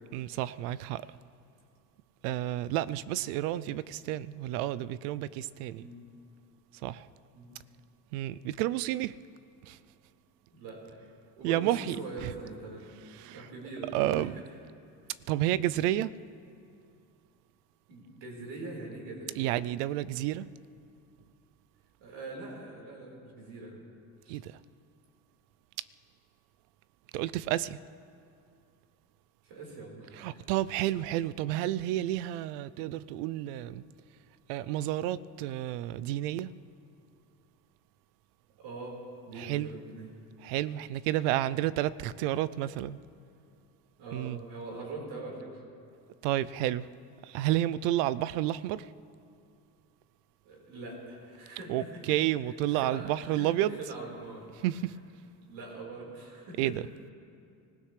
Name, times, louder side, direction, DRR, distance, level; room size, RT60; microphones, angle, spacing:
voice 1, 0.1-1.1 2.2-5.8 6.8-7.1 8.1-9.2 9.6-9.8 11.4-12.0 12.2-12.3 13.1-13.5 13.9-14.3 15.3-16.1 19.4-20.5 24.3-24.6 27.1-27.8 30.2-33.8 34.5-36.5 39.4-39.7 40.4-43.0 44.1-44.4 46.2-46.9 47.2-48.9 51.7-53.8 54.6-55.0 56.6-56.8, right 14 dB, 85° right, 0.6 m, -30 dB
voice 2, 5.7-6.1 7.3-7.5 10.5-11.0 11.4-12.9 13.3-14.3 17.9-19.4 22.0-23.8 24.2-24.4 29.4-30.4 38.6-40.1 44.0-45.6 50.4-52.0 52.7-54.4 55.5-56.7, right 2 dB, 70° right, 4.5 m, -43 dB
25.0 x 16.0 x 3.3 m
supercardioid pair, 85°, 45 cm